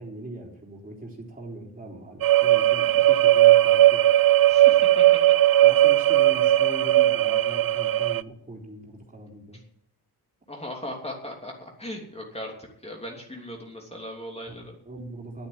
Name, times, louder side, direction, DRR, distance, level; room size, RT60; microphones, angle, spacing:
voice 1, 0.0-4.0 5.6-9.6 14.5-14.6 14.9-15.5, right 2 dB, 20° right, -2 dB, 3.7 m, -40 dB
sound 1, 2.2-8.2, right 14 dB, 65° right, 0.5 m, -18 dB
voice 2, 4.5-5.0 10.5-14.7, left 1 dB, 15° left, 0 dB, 3.0 m, -38 dB
11.0 x 8.7 x 9.5 m, 0.75 s
cardioid pair, 85°, 39 cm